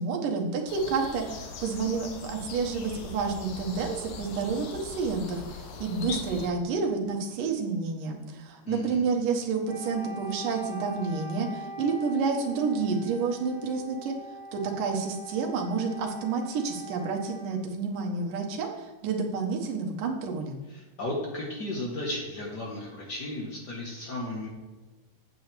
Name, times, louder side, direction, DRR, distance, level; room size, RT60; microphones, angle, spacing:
voice 1, 0.0-14.2 14.5-20.6, right 4 dB, 75° right, 1 dB, 2.7 m, -29 dB
sound 1, 0.7-6.5, left 4 dB, 85° left, 2.8 m, -41 dB
voice 2, 8.6-9.0 20.7-24.5, left 1 dB, 65° left, -1 dB, 1.0 m, -34 dB
Wind instrument woodwind instrument, 9.6-17.7, equal, 35° right, 2.5 m, -42 dB
8.9 x 8.2 x 3.4 m, 1.2 s
omnidirectional pair, 3.9 m